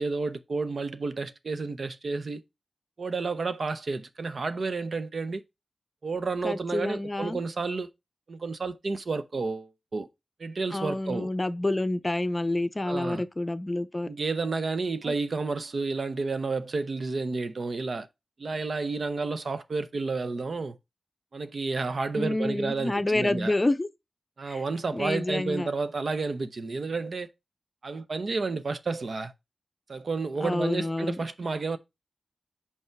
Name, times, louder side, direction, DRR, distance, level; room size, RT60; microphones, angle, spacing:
voice 1, 0.0-2.4 3.0-5.4 6.0-7.9 8.3-10.1 10.4-11.3 12.8-13.2 14.1-18.1 18.4-20.8 21.3-23.5 24.4-27.3 27.8-29.3 29.9-31.8, right 3 dB, 65° right, 0.7 m, -31 dB
voice 2, 6.4-7.4 10.7-14.1 15.0-15.1 22.2-23.9 24.5-24.6 24.9-25.7 30.4-31.2, left 2 dB, 25° left, 0.6 m, -28 dB
5.5 x 4.8 x 4.5 m
wide cardioid pair, 70°, 0 cm